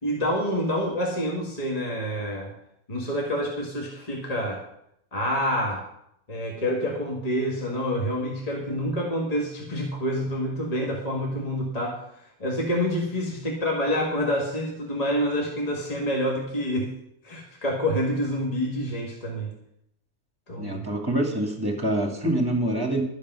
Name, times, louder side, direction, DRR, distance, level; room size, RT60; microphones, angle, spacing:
voice 1, 0.0-2.5 2.9-4.6 5.1-5.8 6.3-12.0 12.4-16.9 17.2-19.5 20.5-20.8, equal, 30° left, -2 dB, 1.8 m, -27 dB
voice 2, 20.6-23.0, right 1 dB, 15° right, 3 dB, 2.1 m, -25 dB
12.5 x 8.6 x 5.5 m, 0.76 s
omnidirectional pair, 1.4 m